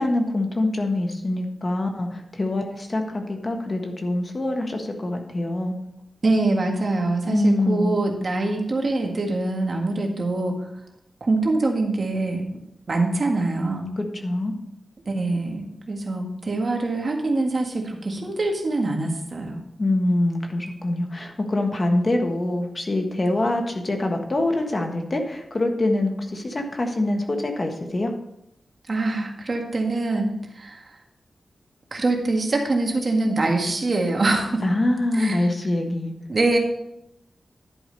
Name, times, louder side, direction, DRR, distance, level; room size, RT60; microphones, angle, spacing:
voice 1, 0.0-5.8 7.2-8.0 14.0-14.5 19.8-28.1 34.6-36.1, left 1 dB, 40° left, 3 dB, 1.4 m, -24 dB
voice 2, 6.2-10.6 11.2-12.5 12.9-13.9 15.1-19.6 28.9-31.0 31.9-34.6 35.1-35.5 36.3-36.6, right 2 dB, 55° right, 1 dB, 1.8 m, -24 dB
11.0 x 5.0 x 5.2 m, 0.80 s
wide cardioid pair, 75°, 0 cm